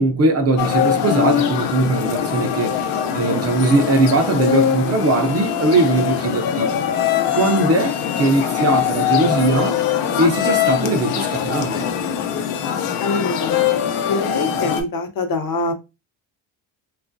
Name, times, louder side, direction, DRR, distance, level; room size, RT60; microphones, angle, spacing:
voice 1, 0.0-2.7 3.1-6.7 7.3-9.8 10.2-11.9, right 2 dB, 35° right, 0.4 m, -19 dB
sound 1, 0.6-14.8, left 9 dB, 75° left, 0.7 m, -22 dB
voice 2, 13.0-15.7, left 3 dB, 45° left, 0.7 m, -24 dB
2.9 x 2.3 x 2.6 m
cardioid pair, 140°, 50 cm